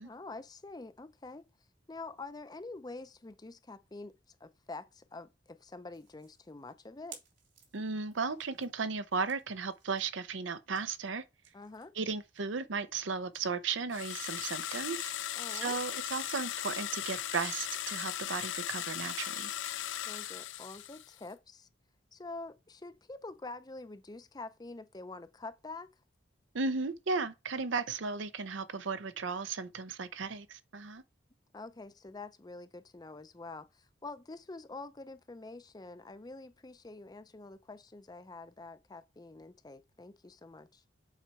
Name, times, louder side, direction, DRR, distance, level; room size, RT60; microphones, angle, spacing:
voice 1, 0.0-1.4 1.9-4.1 4.4-7.2 11.5-11.9 15.4-15.8 20.1-21.7 22.1-25.9 31.5-40.8, left 3 dB, 20° left, 0.5 m, -46 dB
sound 1, 5.9-16.7 17.1-20.2, right 6 dB, 70° right, 2.6 m, -60 dB
voice 2, 7.7-11.2 11.9-15.1 15.5-19.5 26.5-31.0, right 4 dB, 85° right, 0.7 m, -35 dB
sound 2, 13.9-21.2, left 12 dB, 85° left, 0.5 m, -38 dB
7.3 x 4.2 x 4.5 m
head